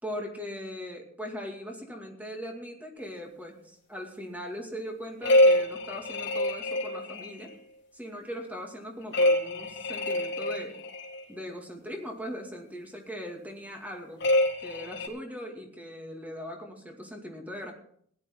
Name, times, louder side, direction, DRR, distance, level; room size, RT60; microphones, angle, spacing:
voice 1, 0.0-7.5 7.9-10.8 11.3-14.3 14.6-17.7, equal, 10° right, 2 dB, 2.3 m, -40 dB
sound 1, 5.2-7.5 9.1-11.2 14.2-15.1, left 1 dB, 60° left, 1.9 m, -25 dB
17.0 x 11.5 x 3.8 m, 0.63 s
head